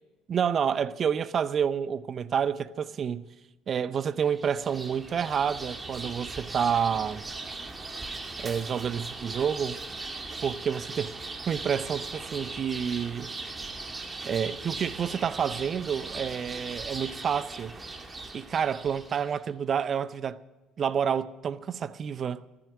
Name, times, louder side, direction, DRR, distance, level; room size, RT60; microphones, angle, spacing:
voice 1, 0.3-3.2 3.7-7.2 8.4-9.8 10.4-11.2 11.5-13.3 14.2-17.7 18.3-20.4 20.8-22.4, right 7 dB, 40° right, 0.7 m, -29 dB
sound 1, 4.2-19.4, right 3 dB, 25° right, 2.1 m, -39 dB
15.0 x 13.5 x 6.1 m
figure-of-eight pair, 60°, 0 cm